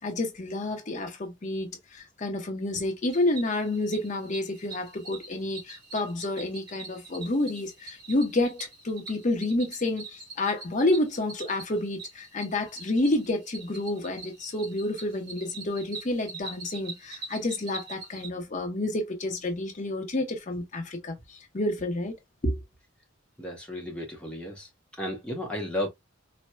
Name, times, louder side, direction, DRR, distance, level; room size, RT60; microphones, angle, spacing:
voice 1, 0.0-22.1 22.4-22.6, left 2 dB, 40° left, 0.8 m, -29 dB
Cricket, 3.1-18.3, right 4 dB, 50° right, 1.7 m, -44 dB
voice 2, 23.4-24.7 25.0-25.9, left 1 dB, 5° left, 0.8 m, -33 dB
4.2 x 2.1 x 2.2 m
head